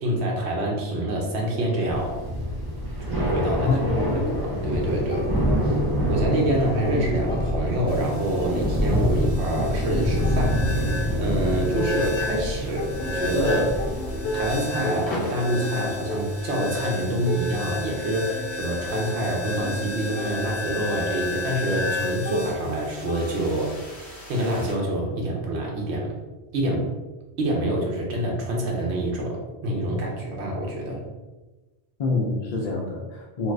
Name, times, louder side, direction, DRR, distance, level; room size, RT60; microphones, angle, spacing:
voice 1, 0.0-2.2 3.0-3.8 4.1-5.3 5.6-5.8 6.1-13.8 14.3-23.8 24.3-26.2 26.5-26.9 27.4-31.0, right 1 dB, 90° right, -1 dB, 1.0 m, -26 dB
Thunder / Rain, 1.9-14.8, equal, 30° right, 0.5 m, -26 dB
voice 2, 3.6-4.1 32.0-33.5, left 3 dB, 55° left, -2 dB, 0.4 m, -26 dB
sound 1, 5.1-6.2 6.5-8.1 8.4-12.4 12.8-23.8, left 1 dB, 75° left, 0.8 m, -36 dB
sound 2, 7.9-24.7, left 3 dB, 30° left, 0.9 m, -33 dB
2.5 x 2.4 x 3.2 m, 1.2 s
omnidirectional pair, 1.1 m